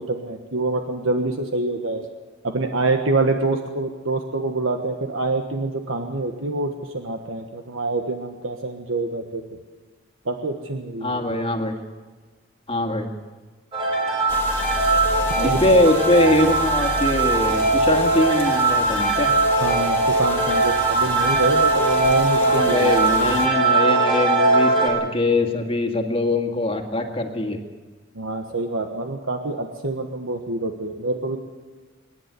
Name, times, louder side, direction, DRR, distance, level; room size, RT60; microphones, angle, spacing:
voice 1, 0.0-2.0 2.4-9.4 10.2-11.3 15.3-15.6 19.6-23.5 28.1-31.4, right 2 dB, 75° right, 5 dB, 1.4 m, -26 dB
voice 2, 11.0-11.8 12.7-13.1 15.4-19.3 22.3-27.6, left 1 dB, 30° left, 4 dB, 1.9 m, -22 dB
sound 1, 13.7-24.9, right 2 dB, 25° right, 5.4 m, -20 dB
sound 2, 14.3-23.5, left 2 dB, 10° left, 2.0 m, -33 dB
25.5 x 11.0 x 9.7 m, 1.4 s
head